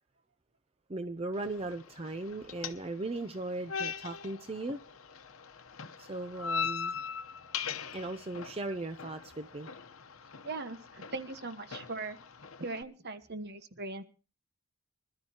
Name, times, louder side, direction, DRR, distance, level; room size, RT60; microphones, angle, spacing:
voice 1, 0.9-4.8 6.0-7.0 7.9-9.7, right 2 dB, 25° right, 0.6 m, -38 dB
sound 1, 1.3-12.8, left 6 dB, 75° left, 1.0 m, -41 dB
voice 2, 10.4-12.2 12.6-14.0, right 3 dB, 50° right, 1.2 m, -40 dB
25.5 x 12.5 x 2.9 m
head